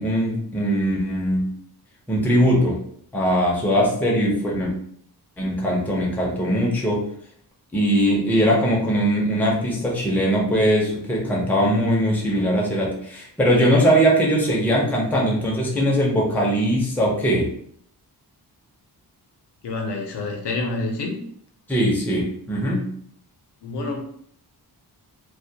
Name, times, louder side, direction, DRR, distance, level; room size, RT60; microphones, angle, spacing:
voice 1, 0.0-1.4 2.1-2.8 3.1-4.7 5.4-7.0 7.7-17.5 21.7-22.8, equal, 5° left, -3 dB, 0.4 m, -20 dB
voice 2, 19.6-21.2 23.6-24.0, left 2 dB, 80° left, 2 dB, 0.6 m, -27 dB
2.2 x 2.1 x 2.6 m, 0.65 s
wide cardioid pair, 170°, 40 cm